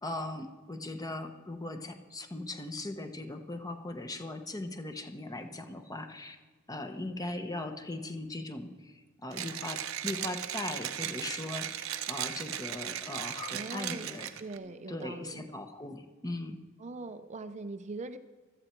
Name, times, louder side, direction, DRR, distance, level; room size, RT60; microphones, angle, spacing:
voice 1, 0.0-6.4 6.7-14.3 14.6-16.6, left 2 dB, 20° left, 7 dB, 0.9 m, -39 dB
Mechanisms, 9.3-14.6, right 10 dB, 80° right, 0.8 m, -37 dB
voice 2, 13.5-14.1 14.4-15.5 16.8-18.2, right 3 dB, 35° right, 9 dB, 0.5 m, -41 dB
16.5 x 13.0 x 4.5 m, 1.4 s
head